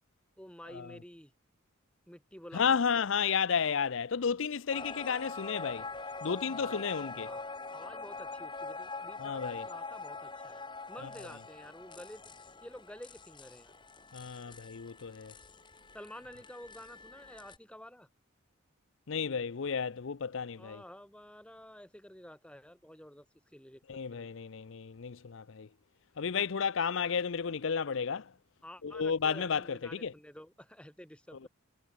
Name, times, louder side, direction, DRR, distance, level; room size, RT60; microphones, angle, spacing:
voice 1, 0.4-1.3 2.1-3.1 6.5-6.8 7.2-12.2 12.6-13.7 15.9-18.1 20.6-23.3 23.5-24.3 28.6-31.5, equal, 5° left, 3.2 m, -50 dB
voice 2, 2.5-5.9 6.2-7.3 9.2-9.6 11.0-11.1 14.1-15.4 19.1-20.8 23.9-25.7 26.2-28.3 28.8-30.1, left 6 dB, 65° left, 0.6 m, -32 dB
sound 1, 4.7-17.6, left 3 dB, 20° left, 4.8 m, -44 dB
head